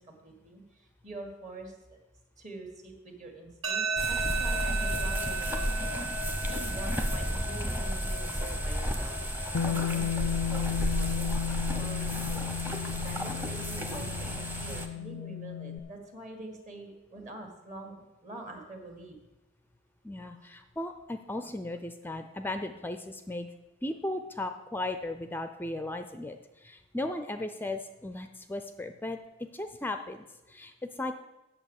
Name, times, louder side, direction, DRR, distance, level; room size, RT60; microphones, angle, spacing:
voice 1, 0.0-2.0 2.4-9.2 9.6-19.2 20.3-20.4, right 2 dB, 40° right, 3 dB, 1.8 m, -46 dB
sound 1, 3.6-16.6, right 4 dB, 70° right, 1.2 m, -38 dB
sound 2, 4.0-14.9, equal, 10° right, 0.9 m, -32 dB
Bass guitar, 9.5-15.8, left 9 dB, 90° left, 0.5 m, -34 dB
voice 2, 20.0-23.5 23.8-29.2 29.5-31.1, left 2 dB, 10° left, 8 dB, 0.4 m, -36 dB
8.5 x 7.1 x 7.2 m, 1.0 s
head